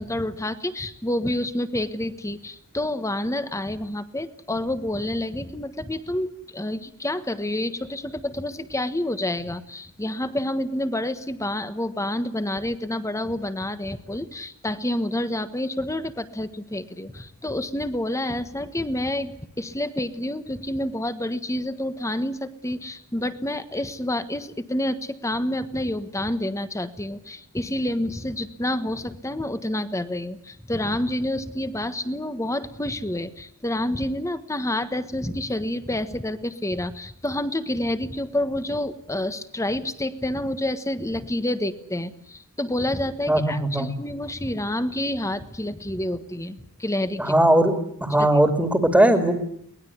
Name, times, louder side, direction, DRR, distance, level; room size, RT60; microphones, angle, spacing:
voice 1, 0.0-47.3 48.2-48.3, left 1 dB, 15° left, 12 dB, 1.4 m, -28 dB
voice 2, 43.3-43.9 47.2-47.7 48.0-49.3, right 1 dB, 5° right, 6 dB, 2.5 m, -19 dB
23.5 x 19.5 x 9.6 m, 0.71 s
head